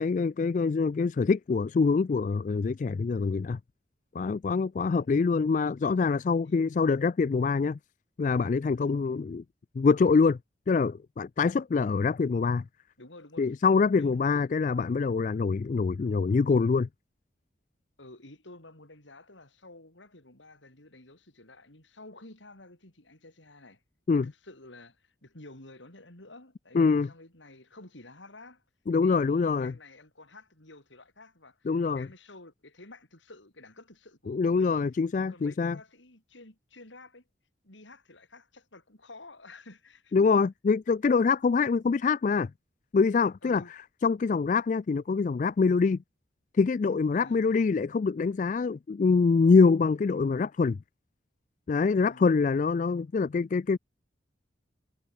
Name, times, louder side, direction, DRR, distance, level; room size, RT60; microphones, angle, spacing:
voice 1, 0.0-3.6 4.1-7.8 8.2-9.4 9.8-10.4 10.7-12.6 13.4-16.9 24.1-24.3 26.7-27.1 28.9-29.7 31.7-32.1 34.3-35.8 40.1-42.5 42.9-43.6 44.0-46.0 46.6-50.8 51.7-53.8, left 4 dB, 40° left, 0.3 m, -25 dB
voice 2, 8.7-9.0 13.0-13.6 14.0-14.2 18.0-23.8 24.1-28.6 29.0-34.8 35.3-37.2 37.6-40.1 43.4-43.7 47.1-47.6 52.0-52.3, left 2 dB, 85° left, 4.8 m, -51 dB
head